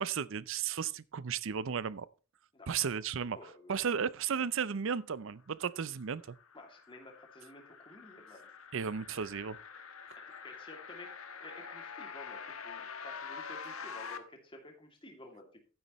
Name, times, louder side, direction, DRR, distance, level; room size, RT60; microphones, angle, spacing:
voice 1, 0.0-2.1 2.7-3.4 3.7-6.4 8.7-9.6, right 7 dB, 65° right, 0.6 m, -34 dB
voice 2, 2.5-2.9 3.4-3.8 6.5-8.5 10.2-11.1 11.4-15.6, left 2 dB, 25° left, 2.6 m, -52 dB
sound 1, 5.8-14.2, left 6 dB, 85° left, 1.3 m, -46 dB
12.0 x 9.7 x 3.1 m
head